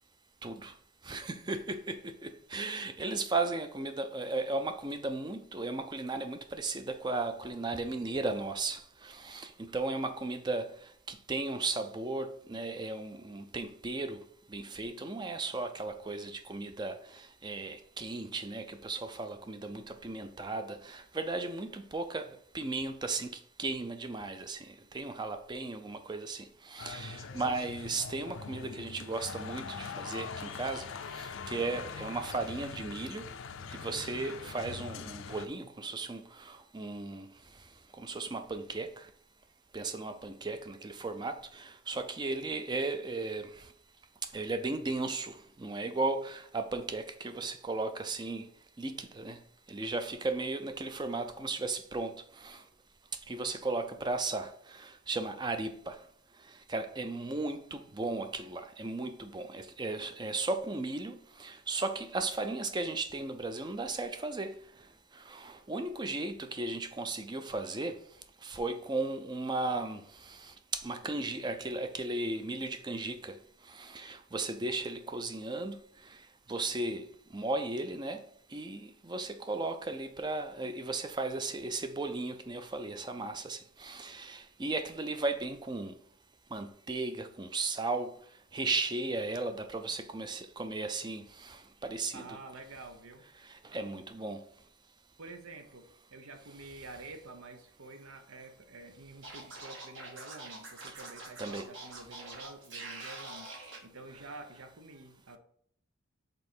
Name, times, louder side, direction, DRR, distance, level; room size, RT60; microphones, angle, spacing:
voice 1, 0.4-0.7 1.0-10.7 11.1-14.2 14.5-22.3 22.5-33.3 33.7-37.3 38.0-39.1 39.7-43.6 44.3-48.4 48.8-49.4 49.7-52.6 53.3-56.0 56.7-64.5 65.2-68.0 68.4-73.4 73.7-75.8 76.5-77.1 77.3-78.2 78.5-85.9 86.5-88.1 88.5-92.4 93.5-94.4 100.9-101.0 101.4-101.7, right 3 dB, 20° right, 0.4 m, -36 dB
sound 1, 26.8-35.5, left 5 dB, 70° left, 0.5 m, -42 dB
voice 2, 92.1-93.2 95.2-105.4, right 3 dB, 85° right, 0.9 m, -49 dB
Scratching (performance technique), 99.2-103.8, right 3 dB, 60° right, 1.6 m, -45 dB
5.3 x 4.1 x 4.4 m
head